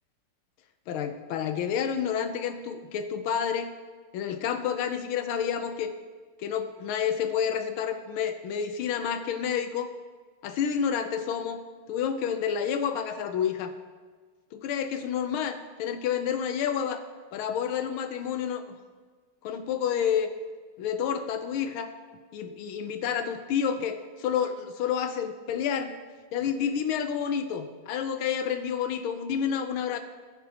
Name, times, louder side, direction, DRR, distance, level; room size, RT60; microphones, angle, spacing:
voice 1, 0.9-3.7 4.1-5.9 6.4-9.9 10.4-11.6 11.9-13.7 14.5-17.0 17.3-18.6 19.4-20.3 20.8-21.9 22.3-25.9 26.3-30.0, left 8 dB, 90° left, 8 dB, 1.6 m, -29 dB
21.5 x 10.5 x 2.9 m, 1.5 s
omnidirectional pair, 2.2 m